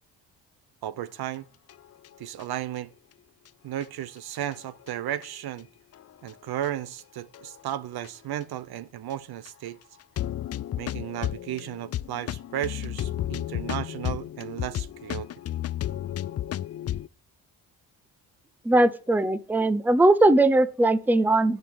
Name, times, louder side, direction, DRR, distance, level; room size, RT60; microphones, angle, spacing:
voice 1, 0.8-1.5 2.2-2.9 3.6-5.7 6.2-9.8 10.8-15.3, right 12 dB, 65° right, 0.8 m, -34 dB
sound 1, 1.7-2.4 2.8-2.9 3.5-3.6 3.8-3.9 4.4-5.3 5.9-6.3 6.6-6.7 7.3-7.8 8.0-8.1 8.4-8.5 9.1-9.2 9.4-9.5 10.0-17.1, left 12 dB, 40° left, 0.4 m, -33 dB
voice 2, 18.6-21.6, right 2 dB, 5° right, 0.6 m, -20 dB
11.0 x 5.2 x 7.9 m
cardioid pair, 90°, 40 cm